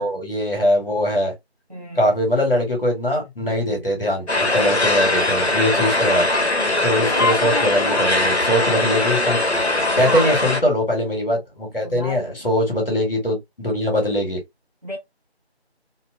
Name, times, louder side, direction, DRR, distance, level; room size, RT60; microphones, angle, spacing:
voice 1, 0.0-1.3 1.9-6.3 6.8-9.4 10.0-14.4, left 1 dB, 55° left, 1.4 m, -22 dB
voice 2, 1.7-2.0 6.6-8.2 10.0-10.3 11.8-12.4 14.8-15.0, left 1 dB, 35° right, 0.9 m, -28 dB
sound 1, 4.3-10.6, left 2 dB, 70° left, 1.1 m, -20 dB
2.8 x 2.3 x 2.4 m
figure-of-eight pair, 175°, 33 cm